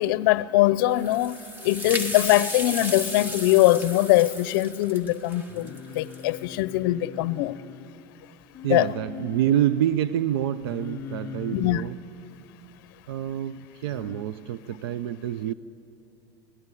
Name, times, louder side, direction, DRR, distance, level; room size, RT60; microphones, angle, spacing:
voice 1, 0.0-7.6 8.7-8.9 11.5-11.8, left 16 dB, 60° left, 0.6 m, -22 dB
sound 1, 0.9-6.4, equal, 15° right, 1.4 m, -35 dB
Singing, 5.5-7.9 8.5-9.7 10.6-12.0 13.9-14.2, left 7 dB, 20° left, 0.7 m, -41 dB
voice 2, 8.6-12.0 13.1-15.5, right 11 dB, 85° right, 0.6 m, -27 dB
25.0 x 17.5 x 9.8 m
supercardioid pair, 170°, 12 cm